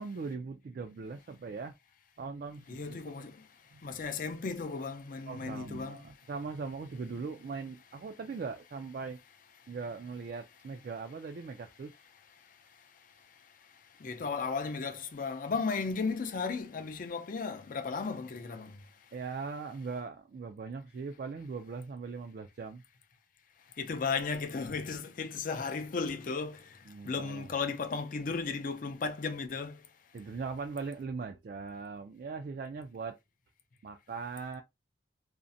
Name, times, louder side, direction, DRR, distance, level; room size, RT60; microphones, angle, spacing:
voice 1, 0.0-1.7 2.2-3.3 3.7-3.9 5.3-9.2 9.7-11.9 19.1-22.8 26.9-27.5 30.1-33.2 33.8-34.6, right 4 dB, 55° right, 0.3 m, -40 dB
voice 2, 2.7-3.3 3.8-6.0 14.0-18.7 23.8-26.6 27.0-29.8, left 4 dB, 50° left, 0.4 m, -35 dB
2.5 x 2.0 x 2.6 m
head